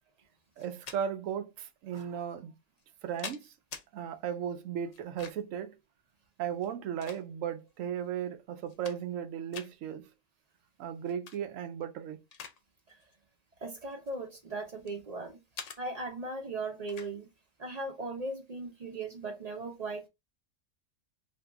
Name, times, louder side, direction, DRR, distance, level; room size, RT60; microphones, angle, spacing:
sound 1, 0.6-1.0 1.9-2.0 2.8-3.9 4.9-5.6 6.5-7.6 8.1-8.2 8.6-9.2 9.5-9.7 11.1-11.4 11.8-12.6 12.9-13.1 13.9-15.0 15.5-15.8 16.9-17.1, left 6 dB, 70° left, 0.3 m, -45 dB
voice 1, 0.6-2.5 3.0-3.5 3.9-5.7 6.4-10.1 10.8-12.2, right 8 dB, 90° right, 1.0 m, -36 dB
voice 2, 13.6-15.4 15.8-17.3 17.6-20.1, right 2 dB, 45° right, 0.5 m, -38 dB
2.7 x 2.6 x 3.4 m
omnidirectional pair, 1.3 m